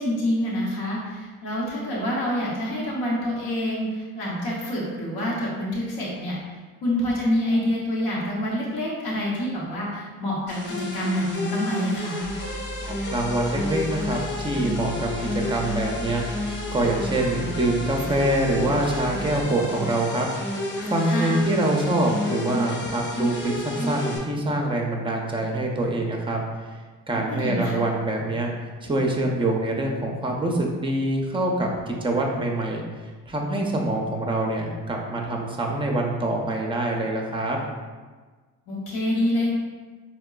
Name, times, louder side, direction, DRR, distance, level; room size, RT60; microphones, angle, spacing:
voice 1, 0.0-10.6 10.9-12.2 21.1-21.4 27.3-27.8 38.7-39.5, left 1 dB, 65° left, -5 dB, 1.0 m, -27 dB
sound 1, 10.5-24.2, left 1 dB, 50° left, 1.2 m, -31 dB
sound 2, 12.2-19.4, left 2 dB, 25° left, 0.7 m, -37 dB
voice 2, 12.8-16.2 16.7-20.3 20.8-26.4 27.1-28.5 28.8-32.8 33.3-37.6, right 1 dB, 15° right, 0 dB, 0.6 m, -25 dB
4.4 x 2.2 x 2.3 m, 1.4 s
supercardioid pair, 70°, 40 cm